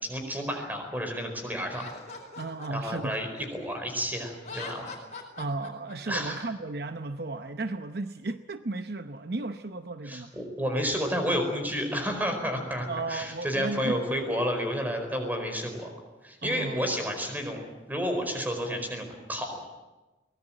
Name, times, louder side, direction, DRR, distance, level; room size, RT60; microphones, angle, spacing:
voice 1, 0.0-1.8 2.7-4.9 6.1-6.5 10.0-15.9 16.2-19.6, equal, 10° right, 4 dB, 4.7 m, -31 dB
Laughter, 1.7-3.9 4.4-6.2, left 4 dB, 40° left, 4.7 m, -42 dB
voice 2, 2.4-3.2 5.4-10.3 12.9-14.0 16.4-16.9, right 3 dB, 60° right, 9 dB, 0.8 m, -34 dB
23.5 x 19.5 x 9.1 m, 1.1 s
head